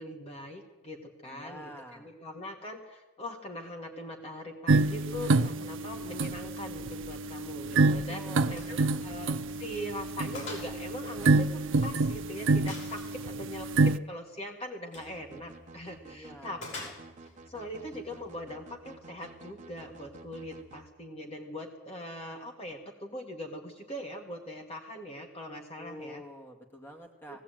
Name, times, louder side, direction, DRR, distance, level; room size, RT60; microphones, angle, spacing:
voice 1, 0.0-16.9 17.5-26.2 27.3-27.4, left 1 dB, 30° left, 2 dB, 1.9 m, -41 dB
voice 2, 1.2-2.1 8.1-9.2 16.0-16.7 25.8-27.4, equal, 10° left, 2 dB, 2.2 m, -47 dB
sound 1, 4.7-14.0, right 3 dB, 60° right, 0.6 m, -28 dB
Gunshot gunfire, 8.5-8.8 9.1-9.2 9.7-9.8 10.3-10.7 11.0-12.0 12.7-13.2 14.8-15.1 16.6-17.3, left 3 dB, 60° left, 5.5 m, -43 dB
sound 2, 14.9-20.9, right 2 dB, 35° right, 1.4 m, -51 dB
19.0 x 17.0 x 9.1 m, 1.2 s
head